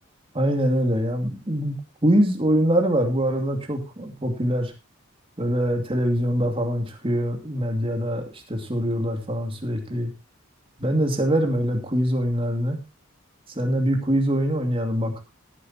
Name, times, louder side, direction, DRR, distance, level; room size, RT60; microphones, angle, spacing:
voice 1, 0.3-1.8 2.0-4.7 5.4-10.1 10.8-12.8 13.6-15.2, equal, 25° right, 4 dB, 2.4 m, -23 dB
18.5 x 9.9 x 2.8 m, 0.25 s
head